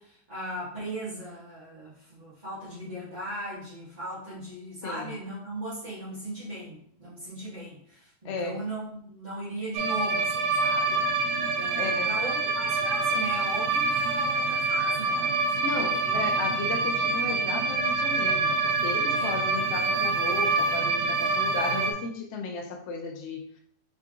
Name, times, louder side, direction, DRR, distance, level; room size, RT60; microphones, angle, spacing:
voice 1, 0.0-11.0 11.3-15.7 16.0-16.2 19.1-19.6, right 1 dB, 30° right, -11 dB, 1.6 m, -38 dB
voice 2, 4.8-5.1 8.2-8.6 11.8-12.1 15.6-23.6, left 4 dB, 60° left, 1 dB, 0.7 m, -34 dB
sound 1, 9.7-21.9, right 3 dB, 80° right, 1.1 m, -26 dB
3.7 x 3.4 x 3.6 m, 0.64 s
omnidirectional pair, 1.6 m